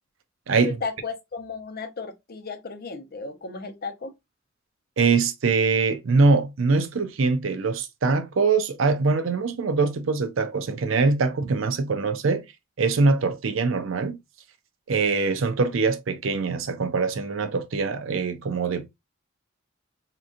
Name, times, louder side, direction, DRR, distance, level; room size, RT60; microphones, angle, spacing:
voice 1, 0.6-4.1, left 4 dB, 50° left, 0.6 m, -34 dB
voice 2, 5.0-12.4 12.8-14.2 14.9-18.9, right 4 dB, 70° right, 0.5 m, -23 dB
3.7 x 2.9 x 2.5 m
head